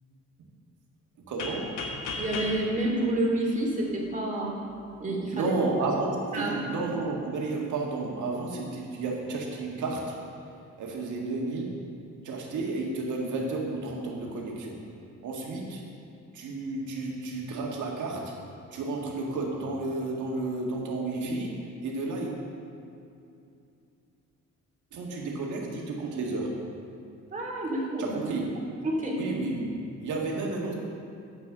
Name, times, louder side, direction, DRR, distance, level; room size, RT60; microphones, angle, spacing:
voice 1, 1.3-1.8 5.3-10.2 10.8-11.8 12.2-14.8 15.2-15.8 16.3-18.3 18.7-22.3 24.9-26.5 28.0-28.6 29.2-29.7 30.0-30.7, right 3 dB, 80° right, -1 dB, 1.9 m, -32 dB
sound 1, 1.4-4.1, left 3 dB, 90° left, 1.2 m, -37 dB
voice 2, 2.2-4.6 5.0-5.5 6.3-6.7 27.3-28.1 28.8-29.2, right 1 dB, 25° right, -3 dB, 2.6 m, -28 dB
9.0 x 6.0 x 6.6 m, 2.6 s
cardioid pair, 90°, 30 cm